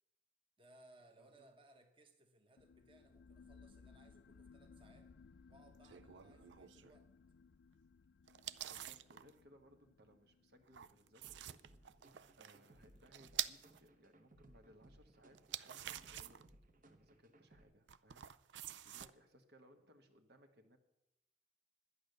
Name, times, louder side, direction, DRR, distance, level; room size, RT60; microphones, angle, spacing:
voice 1, 0.6-5.1 5.5-7.1, right 1 dB, 30° right, 4 dB, 1.2 m, -66 dB
voice 2, 1.2-1.5 8.6-12.0 12.4-16.5 16.8-20.8, equal, 65° right, 5 dB, 1.4 m, -66 dB
sound 1, 2.6-13.7, left 5 dB, 65° left, 0.4 m, -64 dB
sound 2, 5.8-7.0 8.3-9.3 10.7-13.8 15.3-16.5 17.9-19.1, right 12 dB, 85° right, 0.5 m, -47 dB
sound 3, 11.2-17.6, right 1 dB, 50° right, 1.2 m, -65 dB
11.0 x 9.8 x 6.7 m, 0.91 s
head